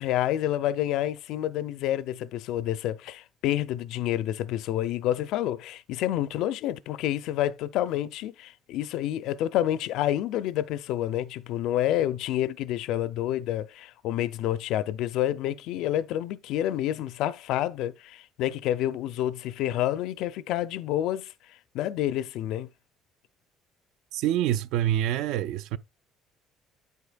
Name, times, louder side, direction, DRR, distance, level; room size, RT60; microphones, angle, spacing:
voice 1, 0.0-21.3 21.7-22.7, left 12 dB, 70° left, 0.5 m, -28 dB
voice 2, 24.1-25.8, right 12 dB, 75° right, 0.5 m, -26 dB
9.1 x 8.1 x 2.4 m
cardioid pair, 170°, 0 cm